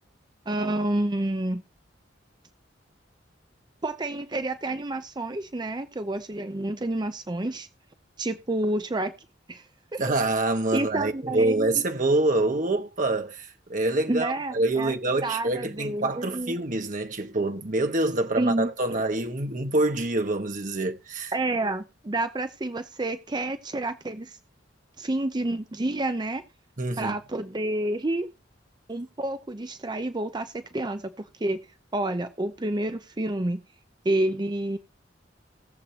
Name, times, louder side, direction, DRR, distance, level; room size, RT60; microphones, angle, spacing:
voice 1, 0.5-1.6 3.8-7.7 8.2-9.1 9.5-10.0 10.7-11.8 14.1-14.9 15.2-16.6 18.4-18.7 21.3-24.4 25.0-26.4 27.0-28.3 28.9-31.6 31.9-33.6 34.0-34.8, right 1 dB, 25° right, 0.6 m, -29 dB
voice 2, 10.0-21.3 26.8-27.1, right 2 dB, 45° right, 1.4 m, -26 dB
19.0 x 7.4 x 2.9 m
head